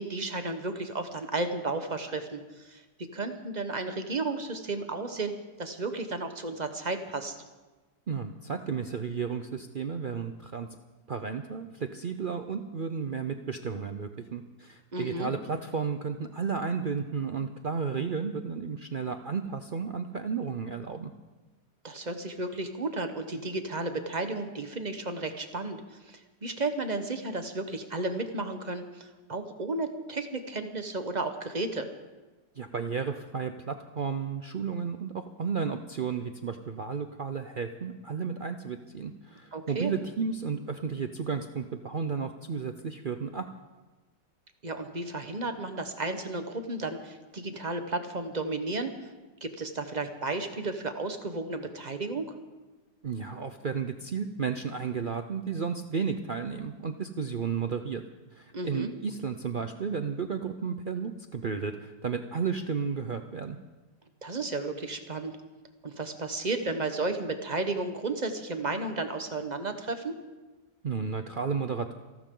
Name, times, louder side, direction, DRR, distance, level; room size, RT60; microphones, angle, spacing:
voice 1, 0.0-2.8 3.1-7.4 14.9-15.3 21.8-25.8 26.1-31.9 39.5-39.9 44.6-48.9 49.4-52.2 58.5-58.9 64.2-65.3 65.8-70.1, right 2 dB, 30° right, 7 dB, 1.1 m, -33 dB
voice 2, 8.1-10.7 11.1-21.1 32.6-43.5 53.0-58.0 58.3-63.6 70.8-71.9, right 6 dB, 75° right, 7 dB, 0.4 m, -33 dB
28.5 x 12.5 x 3.8 m, 1.2 s
omnidirectional pair, 1.8 m